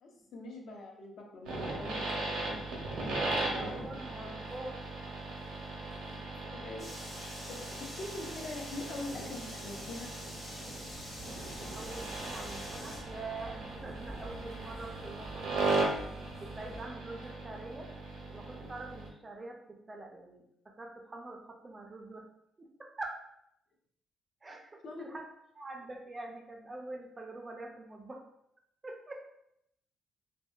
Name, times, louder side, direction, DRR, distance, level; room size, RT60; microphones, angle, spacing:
voice 1, 0.0-2.4 6.4-6.9 7.2-10.1 24.8-25.1, left 2 dB, 55° left, 1 dB, 0.5 m, -43 dB
sound 1, 1.5-19.1, right 2 dB, 90° right, 0.6 m, -38 dB
voice 2, 3.2-4.8 11.7-15.9 16.4-17.9 18.3-22.3 22.6-23.2 24.4-25.2 25.5-28.2 28.8-29.1, right 2 dB, 20° right, 2 dB, 0.3 m, -45 dB
sound 2, 6.8-13.0, left 1 dB, 20° left, 0.7 m, -46 dB
sound 3, 10.8-16.8, right 1 dB, 85° left, 1.4 m, -50 dB
2.7 x 2.1 x 2.2 m, 0.77 s
cardioid pair, 155°, 0 cm